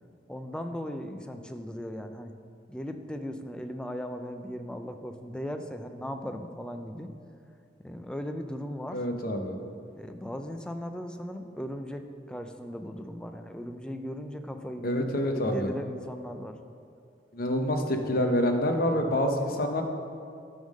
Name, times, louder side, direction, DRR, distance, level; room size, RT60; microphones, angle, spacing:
voice 1, 0.3-2.3 2.7-7.1 7.8-9.0 9.9-16.6, equal, 5° left, 6 dB, 0.4 m, -38 dB
voice 2, 8.9-9.6 14.8-15.7 17.3-19.8, left 1 dB, 55° left, 4 dB, 0.8 m, -27 dB
11.0 x 3.7 x 6.3 m, 2.4 s
head